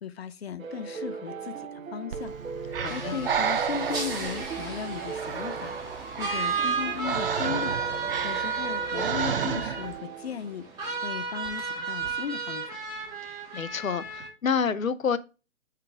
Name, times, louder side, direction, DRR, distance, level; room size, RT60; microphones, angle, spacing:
voice 1, 0.0-2.4 2.6-7.8 8.2-10.7 11.0-12.8, left 8 dB, 50° left, 0.9 m, -37 dB
sound 1, 0.6-11.2, right 5 dB, 75° right, 1.1 m, -39 dB
Breathing, 2.1-10.0, right 7 dB, 45° right, 0.8 m, -32 dB
voice 2, 2.8-3.2 13.3-15.2, left 6 dB, 75° left, 1.0 m, -29 dB
sound 2, 2.8-14.3, right 5 dB, 10° right, 2.6 m, -33 dB
8.6 x 4.8 x 3.5 m
figure-of-eight pair, 140°, 41 cm